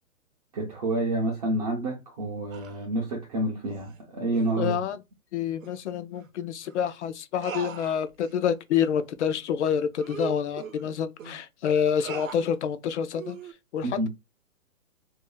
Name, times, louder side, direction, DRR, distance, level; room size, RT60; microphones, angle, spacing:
voice 1, 0.5-4.7 13.8-14.1, right 2 dB, 25° right, 0.6 m, -28 dB
sound 1, 2.5-2.8 3.7-4.0 4.3-4.6 5.6-5.8 6.1-6.3 6.6-6.8 7.4-8.4 8.7-8.9 9.4-9.5 9.9-11.4 12.0-12.5 13.1-13.5, right 7 dB, 65° right, 0.8 m, -40 dB
voice 2, 4.6-5.0 5.3-13.4 13.7-14.1, left 8 dB, 55° left, 0.6 m, -27 dB
2.7 x 2.5 x 3.7 m
hypercardioid pair, 150°, 43 cm